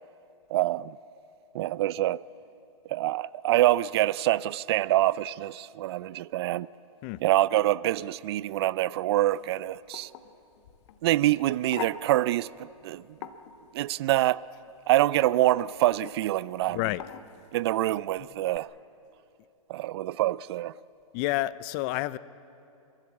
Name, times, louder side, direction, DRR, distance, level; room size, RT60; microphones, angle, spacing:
voice 1, 0.5-0.9 1.5-2.2 2.9-6.7 7.2-10.1 11.0-12.5 12.8-13.0 13.7-14.4 14.9-16.8 17.5-18.7 19.7-20.7, right 15 dB, 45° right, 0.4 m, -25 dB
sound 1, 9.3-18.6, left 9 dB, 50° left, 1.3 m, -46 dB
voice 2, 16.7-17.0 21.1-22.2, left 17 dB, 35° left, 0.5 m, -29 dB
30.0 x 13.0 x 8.5 m
hypercardioid pair, 130°, 18 cm